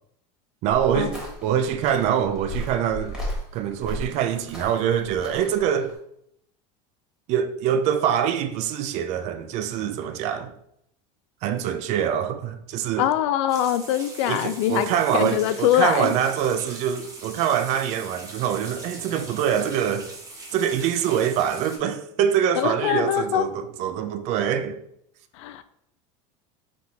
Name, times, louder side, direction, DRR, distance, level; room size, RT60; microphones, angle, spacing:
voice 1, 0.6-3.2 3.5-6.0 7.3-10.5 11.4-13.1 14.2-20.1 20.5-24.8, right 9 dB, 50° right, 0.4 m, -24 dB
sound 1, 0.7-5.9, equal, 5° right, 1.3 m, -35 dB
voice 2, 13.0-16.1 22.6-23.5 25.4-25.6, left 11 dB, 80° left, 0.4 m, -23 dB
sound 2, 13.5-21.8, right 2 dB, 20° right, 0.9 m, -41 dB
4.1 x 3.4 x 2.9 m
supercardioid pair, 135°, 15 cm